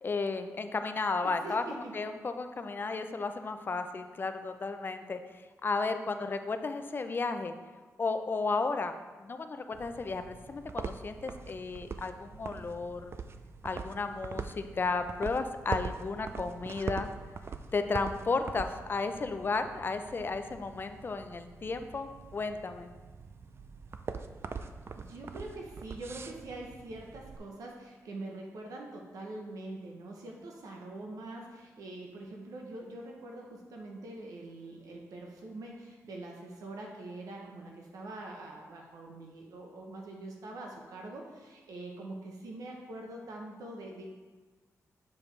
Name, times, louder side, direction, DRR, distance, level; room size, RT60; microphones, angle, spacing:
voice 1, 0.0-7.5 8.0-8.9 9.2-13.1 13.6-17.1 17.7-22.9, left 3 dB, 35° left, 8 dB, 0.4 m, -33 dB
voice 2, 1.2-2.0 24.9-44.1, right 2 dB, 80° right, 0 dB, 0.9 m, -44 dB
sound 1, 9.7-27.4, right 5 dB, 45° right, 0.4 m, -43 dB
7.0 x 4.9 x 3.2 m, 1.3 s
cardioid pair, 90°, 6 cm